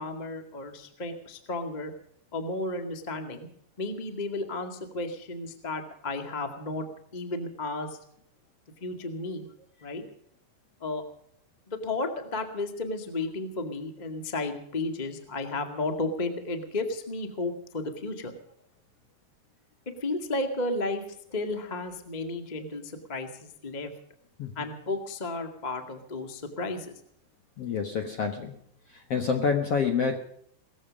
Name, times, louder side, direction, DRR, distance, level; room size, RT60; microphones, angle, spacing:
voice 1, 0.0-1.9 2.3-3.5 3.8-6.8 7.1-8.0 8.8-9.5 9.8-10.0 10.8-11.0 11.7-18.3 20.0-23.9 24.5-26.9, left 2 dB, 45° left, 6 dB, 0.5 m, -33 dB
voice 2, 27.6-28.6 28.9-30.2, left 6 dB, 65° left, 4 dB, 1.5 m, -28 dB
18.5 x 15.0 x 5.2 m, 0.68 s
omnidirectional pair, 4.7 m